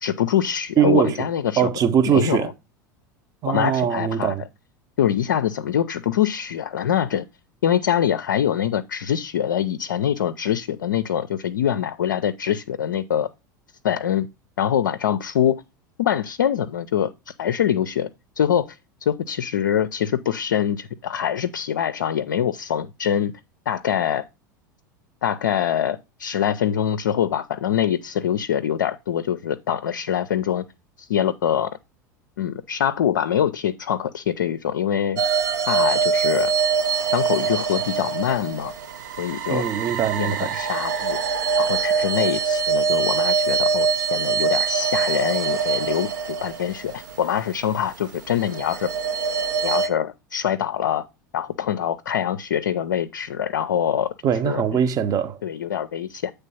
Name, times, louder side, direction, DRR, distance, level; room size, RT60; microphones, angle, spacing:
voice 1, 0.0-1.7 2.1-2.5 3.5-4.4 5.0-7.2 7.6-13.3 13.8-14.3 14.6-15.6 16.0-18.1 18.4-18.7 19.0-23.3 23.7-24.2 25.2-30.6 31.0-31.7 32.4-35.2 35.7-36.5 37.1-38.7 39.2-39.7 40.2-41.2 41.6-46.1 46.4-48.9 49.6-51.0 51.3-54.1 54.4-54.8 55.4-56.3, left 9 dB, 75° left, 0.4 m, -24 dB
voice 2, 0.8-1.2 1.6-2.5 3.4-4.4 39.5-40.6 54.2-55.4, right 9 dB, 35° right, 0.8 m, -21 dB
sound 1, 35.2-47.3 48.4-49.9, right 6 dB, 70° right, 0.8 m, -24 dB
8.2 x 3.3 x 5.5 m
figure-of-eight pair, 80°, 10 cm